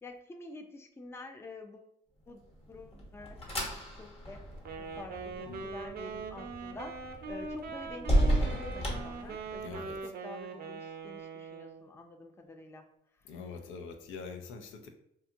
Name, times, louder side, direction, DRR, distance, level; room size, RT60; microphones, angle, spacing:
voice 1, 0.0-1.9 2.3-2.4 2.7-3.4 3.9-4.4 4.8-12.9 13.2-13.3, left 2 dB, 15° left, 5 dB, 0.4 m, -48 dB
sound 1, 2.5-9.8, right 1 dB, 30° left, 1.0 m, -34 dB
Wind instrument woodwind instrument, 4.6-11.8, right 4 dB, 50° right, 0.5 m, -41 dB
voice 2, 9.6-10.0 13.3-14.9, left 5 dB, 80° left, 5 dB, 0.5 m, -44 dB
2.7 x 2.3 x 2.6 m, 0.73 s
cardioid pair, 90°, 20 cm